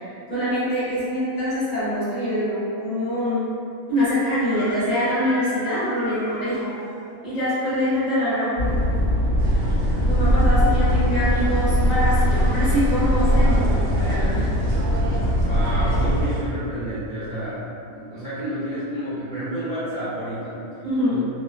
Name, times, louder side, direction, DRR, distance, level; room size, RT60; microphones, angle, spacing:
voice 1, 0.0-3.4 3.9-6.7 7.2-8.7 10.0-13.6 14.0-14.5 20.8-21.2, equal, 35° left, -12 dB, 0.9 m, -24 dB
Screaming, 4.4-7.2, equal, 10° right, 0.9 m, -37 dB
sound 1, 8.6-16.2, equal, 55° right, 0.9 m, -20 dB
sound 2, 9.4-16.4, right 1 dB, 85° right, 1.0 m, -33 dB
voice 2, 15.4-17.7 17.9-20.6 21.1-21.2, right 1 dB, 30° right, -15 dB, 1.1 m, -30 dB
2.7 x 2.1 x 2.4 m, 2.5 s
omnidirectional pair, 1.4 m